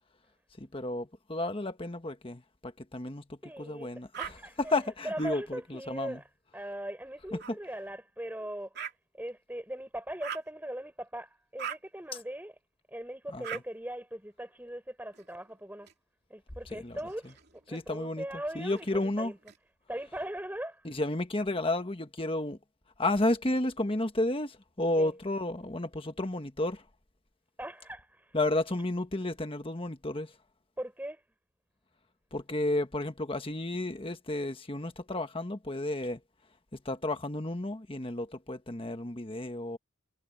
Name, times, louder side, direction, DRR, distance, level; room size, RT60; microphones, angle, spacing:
voice 1, 0.6-4.3 4.6-6.2 13.3-13.6 16.7-17.0 17.7-18.2 18.5-19.3 20.8-22.6 23.0-26.8 28.3-30.3 32.3-36.2 36.8-39.8, left 2 dB, 25° left, 1.5 m, -32 dB
voice 2, 3.4-3.9 4.2-4.8 5.0-6.2 6.5-8.7 9.1-12.5 12.9-15.9 16.3-19.4 19.9-20.9 25.0-25.1 27.6-28.4 30.8-31.2, right 1 dB, 10° right, 4.9 m, -40 dB
sound 1, 4.1-4.3 5.2-5.3 7.4-7.5 8.8-8.9 10.2-10.5 11.6-11.8 13.4-13.6 15.1-15.9 16.9-17.8 18.7-19.6, right 8 dB, 55° right, 2.8 m, -41 dB
head